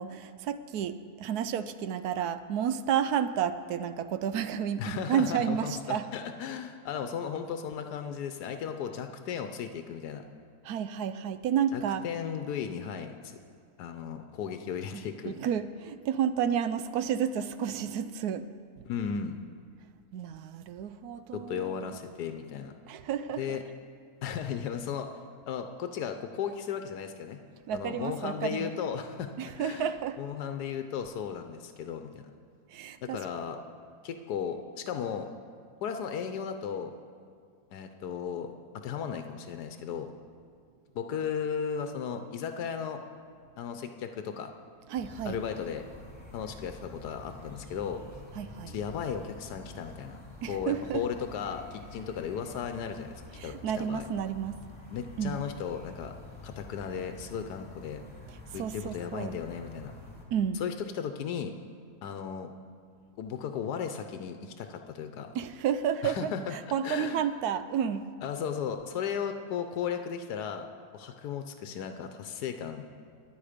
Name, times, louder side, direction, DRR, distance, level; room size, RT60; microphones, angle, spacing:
voice 1, 0.0-6.1 10.6-12.0 14.9-18.5 20.1-21.8 22.9-23.6 27.7-28.7 29.4-30.2 32.7-33.2 44.9-45.4 48.4-48.8 50.4-51.0 53.4-54.6 55.2-55.4 58.5-59.3 60.3-60.6 65.3-68.1, right 8 dB, 75° right, 12 dB, 1.1 m, -31 dB
voice 2, 4.8-10.2 11.7-13.4 13.8-15.4 18.8-19.4 21.3-22.7 23.4-23.6 24.2-25.1 25.5-27.4 27.7-29.9 30.2-32.3 33.0-33.6 34.0-35.3 35.8-36.9 37.7-40.1 40.9-43.0 43.6-44.5 45.2-45.8 46.3-48.0 48.7-50.2 50.5-54.1 54.9-56.1 56.4-58.0 58.5-59.9 60.5-61.5 62.0-62.5 63.2-65.3 66.0-67.2 68.2-70.7 70.9-72.9, left 7 dB, 85° left, 7 dB, 1.3 m, -35 dB
sound 1, 44.9-60.2, left 2 dB, 5° left, 2.4 m, -48 dB
22.5 x 8.1 x 5.1 m, 2.1 s
omnidirectional pair, 1.7 m